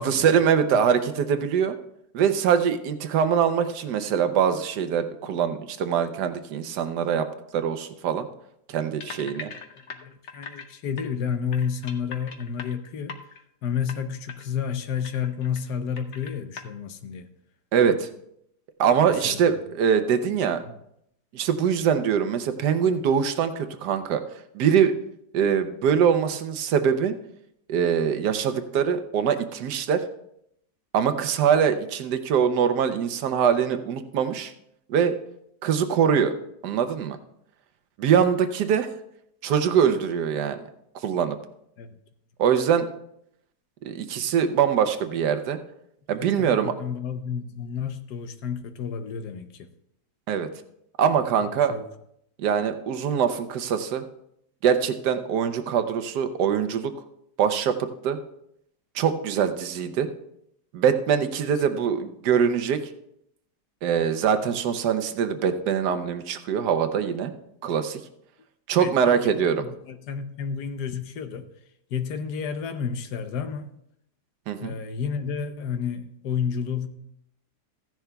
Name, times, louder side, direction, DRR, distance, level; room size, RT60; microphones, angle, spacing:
voice 1, 0.0-1.8 2.1-7.3 7.5-8.3 8.7-9.5 17.7-18.1 18.8-20.6 21.3-24.2 24.5-24.9 25.3-27.1 27.7-30.0 30.9-34.5 34.9-35.2 35.6-36.3 36.6-37.2 38.0-38.9 39.4-40.6 41.0-41.4 42.4-42.9 43.8-45.6 46.1-46.7 50.3-50.5 51.0-51.7 52.4-54.0 54.6-57.0 57.4-58.2 58.9-60.1 60.7-62.8 63.8-67.3 67.6-68.0 68.7-69.6 74.5-74.7, right 7 dB, 85° right, 1.4 m, -23 dB
sound 1, 9.0-10.7 11.0-11.1 11.5-13.4 13.8-14.0 14.3-14.4 14.7-15.7 16.0-16.6, left 5 dB, 55° left, 0.9 m, -40 dB
voice 2, 9.3-13.2 13.6-17.3 19.0-19.5 41.8-41.9 46.2-49.7 51.7-51.9 61.5-61.6 68.8-71.5 71.9-73.7 74.6-76.9, left 7 dB, 90° left, 1.3 m, -31 dB
15.0 x 10.5 x 2.3 m
omnidirectional pair, 1.7 m